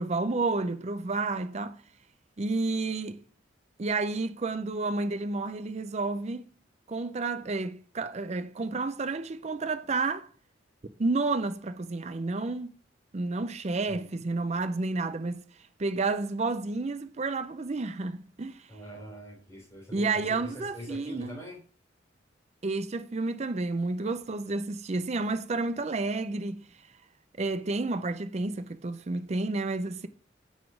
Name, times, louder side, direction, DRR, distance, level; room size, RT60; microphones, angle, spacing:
voice 1, 0.0-1.8 2.4-3.2 3.8-6.5 6.9-10.3 11.0-12.7 13.1-15.4 15.8-18.7 19.9-21.4 22.6-26.6 27.4-30.1, right 3 dB, 35° right, 0.5 m, -30 dB
voice 2, 18.7-21.6, equal, 15° left, 3.4 m, -43 dB
9.7 x 4.1 x 5.9 m
head